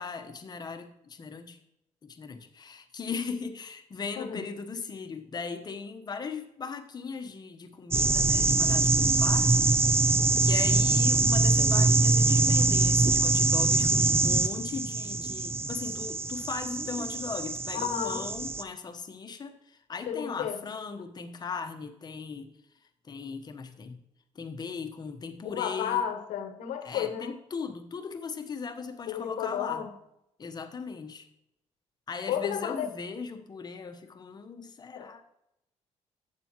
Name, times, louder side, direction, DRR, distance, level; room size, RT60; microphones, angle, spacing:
voice 1, 0.0-1.6 2.0-9.7 10.4-22.5 23.0-24.0 24.3-26.0 26.8-29.9 30.4-31.3 32.1-35.2, left 5 dB, 35° left, 7 dB, 1.1 m, -38 dB
sound 1, 7.9-18.6, right 3 dB, 20° right, 0.6 m, -24 dB
voice 2, 17.7-18.3 20.1-20.6 25.4-27.4 29.1-29.9 32.3-32.9 34.9-35.1, left 9 dB, 90° left, 9 dB, 1.1 m, -32 dB
12.0 x 8.5 x 3.0 m, 0.83 s
cardioid pair, 120°, 12 cm